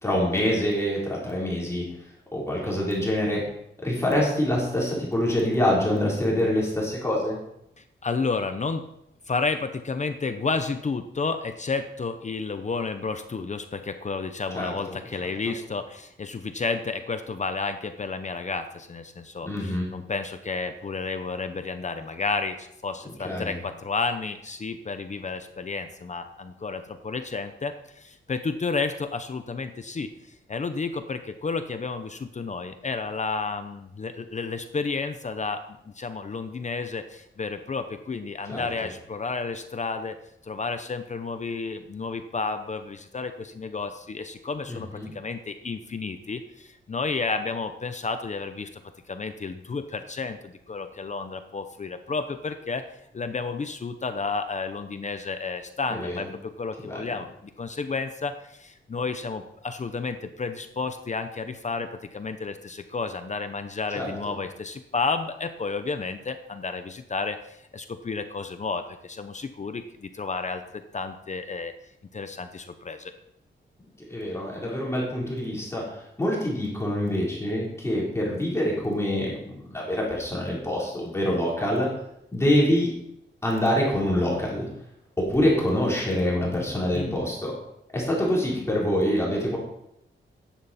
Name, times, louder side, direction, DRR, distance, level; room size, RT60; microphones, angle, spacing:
voice 1, 0.0-1.8 2.3-3.4 3.8-7.4 14.5-15.0 15.4-15.5 19.5-19.9 23.0-23.6 38.5-38.7 44.7-45.1 55.9-56.3 56.8-57.0 63.9-64.3 74.1-81.9 82.3-82.9 83.4-84.7 85.2-87.5 87.9-89.6, left 1 dB, 15° left, -4 dB, 3.8 m, -25 dB
voice 2, 7.8-8.8 9.3-30.1 30.5-40.2 40.4-48.8 49.1-52.8 53.1-71.7 72.1-73.1 86.9-87.2, left 4 dB, 35° left, 8 dB, 0.8 m, -31 dB
15.0 x 10.5 x 4.3 m, 0.78 s
wide cardioid pair, 175°, 20 cm